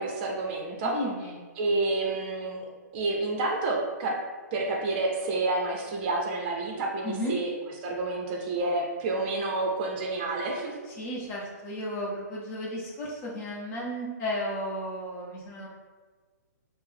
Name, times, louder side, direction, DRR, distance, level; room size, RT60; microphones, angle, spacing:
voice 1, 0.0-1.0 1.6-2.6 2.9-4.2 4.5-7.5 7.8-10.7, right 2 dB, 35° right, 0 dB, 0.6 m, -29 dB
voice 2, 0.8-1.3 2.1-2.2 7.0-7.4 10.9-15.7, equal, 25° left, -3 dB, 0.8 m, -34 dB
4.4 x 2.0 x 3.5 m, 1.5 s
hypercardioid pair, 135°, 9 cm